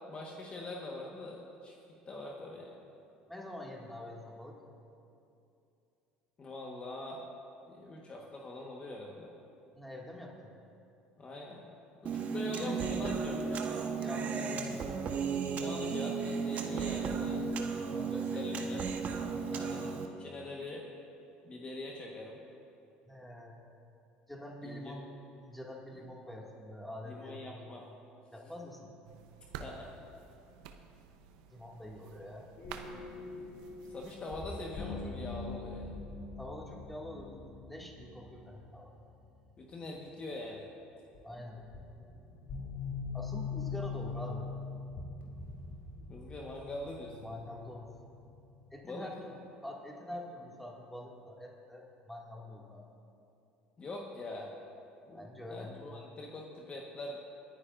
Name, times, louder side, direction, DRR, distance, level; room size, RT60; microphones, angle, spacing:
voice 1, 0.1-1.8 2.1-2.8 6.4-7.2 7.7-9.3 11.2-11.6 12.0-13.7 15.5-17.5 18.1-18.9 19.4-20.9 21.4-22.4 24.6-24.9 27.0-27.9 29.6-29.9 33.9-35.9 39.6-40.7 46.1-47.2 48.8-49.1 53.8-54.5 55.1-57.2, left 2 dB, 30° left, -1 dB, 1.4 m, -43 dB
voice 2, 3.3-4.6 9.7-10.5 14.0-15.0 17.8-18.8 23.0-23.6 24.3-25.1 25.4-27.6 28.3-28.9 31.5-32.5 36.4-39.0 41.2-41.7 43.1-44.5 47.2-47.9 48.7-49.4 49.6-52.9 55.1-55.7, left 1 dB, 5° left, -2 dB, 2.2 m, -45 dB
Human voice, 12.1-20.1, right 5 dB, 45° right, 1.2 m, -34 dB
sound 1, 29.0-34.4, right 7 dB, 85° right, 0.8 m, -51 dB
sound 2, 32.6-39.5 41.1-41.2 41.7-48.8, left 4 dB, 60° left, 2.6 m, -43 dB
28.0 x 9.9 x 2.6 m, 2.7 s
supercardioid pair, 90°, 4 cm